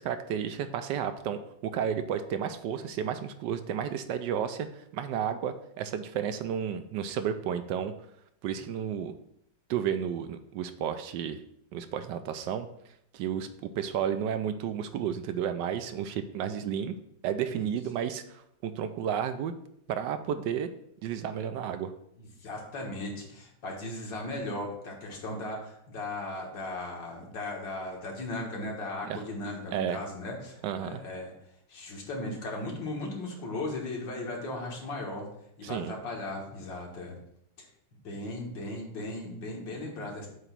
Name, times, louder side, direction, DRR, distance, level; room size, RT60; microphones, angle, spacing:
voice 1, 0.0-4.7 4.9-7.9 8.4-9.1 9.7-11.4 11.7-12.7 13.1-13.5 13.8-17.0 17.2-19.5 19.9-20.7 21.0-21.9 29.0-29.2 29.7-30.0 30.6-31.0 35.6-35.9, right 8 dB, 75° right, 9 dB, 1.2 m, -32 dB
voice 2, 22.2-31.3 31.7-35.2 35.6-37.1 37.6-37.7 38.0-40.3, left 2 dB, 75° left, -1 dB, 2.2 m, -37 dB
7.9 x 3.0 x 5.9 m, 0.74 s
omnidirectional pair, 2.0 m